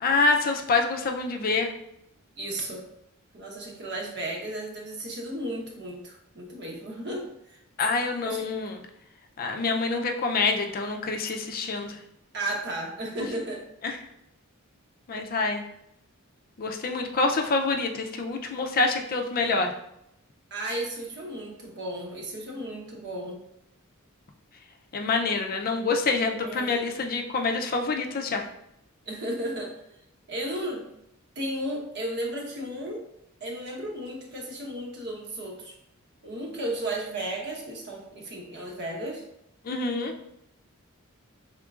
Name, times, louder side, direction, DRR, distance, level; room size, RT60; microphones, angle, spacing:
voice 1, 0.0-1.7 7.8-8.7 9.4-11.9 15.1-15.6 16.6-19.7 24.9-28.4 39.7-40.1, left 3 dB, 45° left, 4 dB, 0.4 m, -26 dB
voice 2, 2.4-2.8 3.3-7.6 8.2-8.4 12.3-13.6 20.5-23.4 26.4-26.8 29.1-29.8 30.3-30.9 31.4-33.0 33.4-35.7 36.2-39.2, right 1 dB, 55° right, 0 dB, 1.0 m, -34 dB
5.0 x 3.6 x 2.4 m, 0.80 s
head